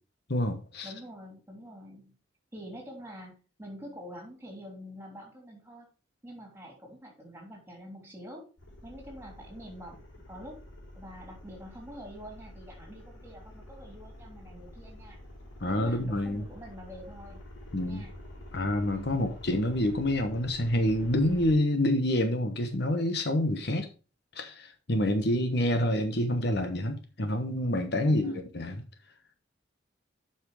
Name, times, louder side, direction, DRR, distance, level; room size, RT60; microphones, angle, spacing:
voice 1, 0.3-0.9 15.6-16.4 17.7-18.0 18.5-23.9 24.3-28.8, left 1 dB, 55° left, 1.1 m, -27 dB
voice 2, 0.8-2.2 2.5-5.9 6.2-8.5 8.8-10.6 10.9-15.2 15.7-17.4 17.8-18.2 18.9-19.2 28.0-28.5, equal, 10° right, 3.2 m, -46 dB
sound 1, 8.6-21.5, left 1 dB, 80° left, 3.8 m, -48 dB
8.0 x 5.9 x 4.9 m
head